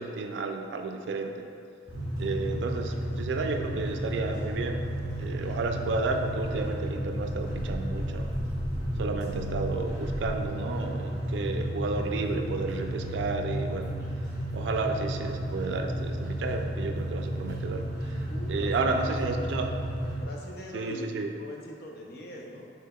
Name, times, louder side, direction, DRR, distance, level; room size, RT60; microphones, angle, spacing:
voice 1, 0.0-1.5 2.2-8.3 9.0-13.9 14.5-18.2 18.5-19.8 20.7-21.3, right 3 dB, 80° right, 5 dB, 0.3 m, -32 dB
sound 1, 1.9-20.2, right 1 dB, 20° right, 1.2 m, -33 dB
sound 2, 7.0-10.5, equal, 30° left, 1.5 m, -41 dB
voice 2, 18.3-19.1 20.2-22.7, left 1 dB, 60° left, -1 dB, 0.6 m, -42 dB
5.3 x 3.3 x 2.3 m, 2.3 s
head